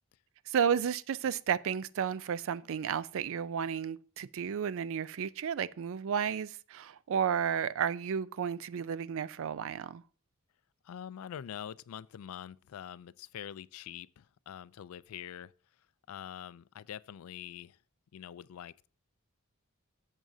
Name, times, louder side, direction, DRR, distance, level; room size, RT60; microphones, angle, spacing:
voice 1, 0.5-10.0, right 7 dB, 65° right, 0.4 m, -32 dB
voice 2, 10.8-15.5 16.1-17.8 18.1-18.9, left 9 dB, 70° left, 0.3 m, -45 dB
12.0 x 7.4 x 2.7 m
head